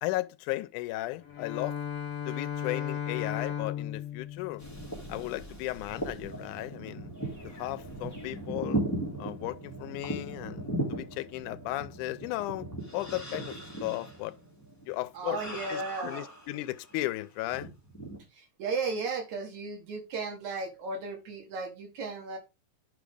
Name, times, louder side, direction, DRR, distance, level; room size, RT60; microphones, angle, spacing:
voice 1, 0.0-1.8 2.3-4.6 5.1-7.1 7.4-8.8 9.2-12.7 12.9-13.5 13.8-14.4 14.9-15.4 15.7-17.7, left 17 dB, 85° left, 2.1 m, -35 dB
Bowed string instrument, 1.2-5.4, left 9 dB, 60° left, 2.2 m, -36 dB
sound 1, 4.6-17.0 17.4-18.2, right 1 dB, 5° left, 2.4 m, -38 dB
voice 2, 15.1-16.3 18.3-22.4, right 4 dB, 70° right, 2.7 m, -35 dB
10.5 x 5.1 x 3.5 m
omnidirectional pair, 3.6 m